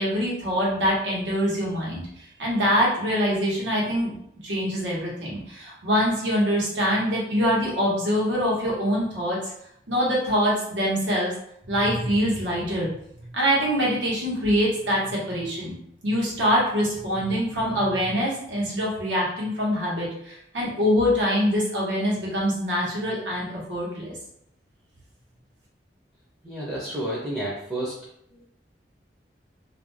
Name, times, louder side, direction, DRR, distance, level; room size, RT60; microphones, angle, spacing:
voice 1, 0.0-2.1 2.4-4.1 4.4-9.4 9.9-11.3 11.7-12.9 13.3-15.7 16.0-24.1, equal, 90° right, -5 dB, 1.0 m, -24 dB
voice 2, 26.4-28.0 28.3-28.5, right 1 dB, 10° right, -6 dB, 0.5 m, -31 dB
2.4 x 2.2 x 3.1 m, 0.72 s
head